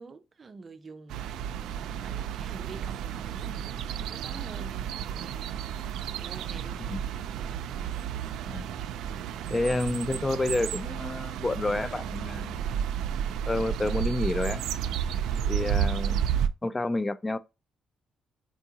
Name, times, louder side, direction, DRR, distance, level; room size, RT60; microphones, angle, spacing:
voice 1, 0.0-5.4 6.2-7.1, right 4 dB, 35° right, 0.6 m, -47 dB
sound 1, 1.1-16.5, right 9 dB, 85° right, 0.3 m, -32 dB
voice 2, 9.5-12.6 13.5-14.6 15.5-17.4, left 2 dB, 20° left, 0.4 m, -29 dB
4.6 x 2.7 x 2.7 m
cardioid pair, 90°, 0 cm